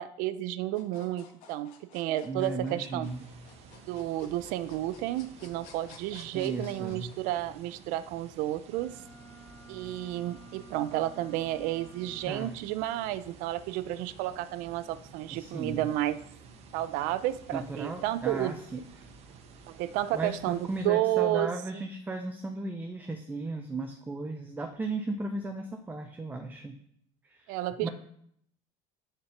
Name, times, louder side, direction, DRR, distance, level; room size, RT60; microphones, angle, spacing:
voice 1, 0.0-3.1 3.9-9.0 9.7-16.2 16.7-18.6 19.7-21.5 27.5-27.9, right 14 dB, 70° right, 14 dB, 0.5 m, -31 dB
sound 1, 0.7-7.2, left 7 dB, 75° left, 1.6 m, -54 dB
voice 2, 2.2-3.2 6.3-7.1 12.3-12.6 15.3-15.9 17.5-18.8 20.1-26.8 27.3-27.9, right 2 dB, 15° right, 5 dB, 0.7 m, -36 dB
sound 2, 3.0-20.9, right 5 dB, 45° right, 1.1 m, -52 dB
Wind instrument woodwind instrument, 8.7-12.7, right 1 dB, 10° left, 1.4 m, -53 dB
9.7 x 4.4 x 7.0 m, 0.69 s
cardioid pair, 150°, 14 cm